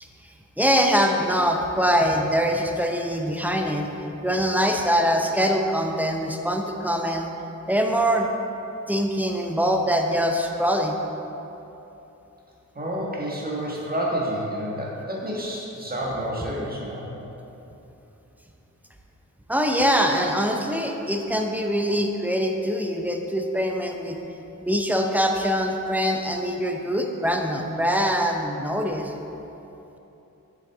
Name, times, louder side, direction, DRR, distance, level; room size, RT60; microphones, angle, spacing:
voice 1, 0.6-7.3 7.7-8.3 8.9-11.0 19.5-24.2 24.7-29.1, equal, 5° right, 2 dB, 0.6 m, -23 dB
voice 2, 12.7-17.1, equal, 30° right, -4 dB, 1.6 m, -29 dB
7.6 x 6.4 x 3.6 m, 3.0 s
cardioid pair, 85°, 32 cm